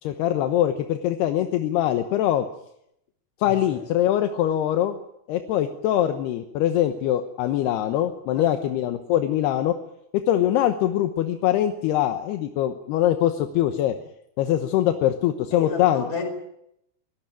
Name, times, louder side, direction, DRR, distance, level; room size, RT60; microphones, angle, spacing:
voice 1, 0.0-2.5 3.4-5.0 5.3-9.7 10.3-13.9 14.4-16.1, left 12 dB, 80° left, 8 dB, 3.1 m, -23 dB
voice 2, 3.5-3.8 8.3-8.6 15.5-16.3, left 4 dB, 45° left, 7 dB, 5.7 m, -32 dB
23.5 x 18.5 x 9.0 m, 0.77 s
omnidirectional pair, 4.7 m